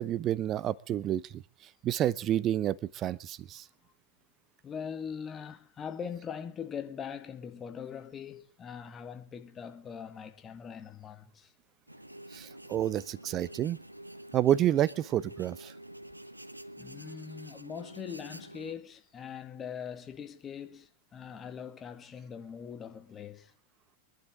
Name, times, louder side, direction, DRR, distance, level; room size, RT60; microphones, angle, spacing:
voice 1, 0.0-1.4 1.8-3.6 12.3-13.8 14.3-15.7, right 12 dB, 30° right, 0.7 m, -29 dB
voice 2, 4.6-11.5 12.7-12.8 16.8-23.5, left 7 dB, 25° left, 1.9 m, -42 dB
sound 1, 11.9-18.7, right 1 dB, 90° right, 0.7 m, -48 dB
24.5 x 11.5 x 3.8 m
figure-of-eight pair, 90°, 0 cm